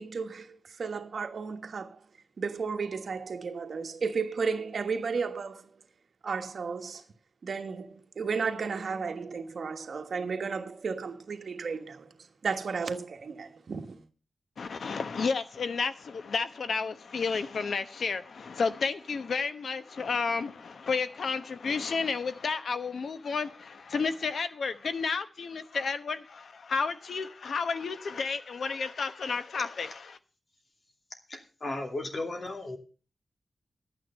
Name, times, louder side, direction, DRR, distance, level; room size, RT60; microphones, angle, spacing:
voice 1, 0.0-2.0 2.4-5.7 6.2-7.0 7.4-12.1 12.4-14.1, right 5 dB, 75° right, 1.3 m, -33 dB
voice 2, 14.6-30.2, left 5 dB, 85° left, 0.9 m, -31 dB
voice 3, 31.3-32.8, left 2 dB, 50° left, 2.6 m, -35 dB
12.5 x 9.1 x 5.5 m
wide cardioid pair, 110°, 0 cm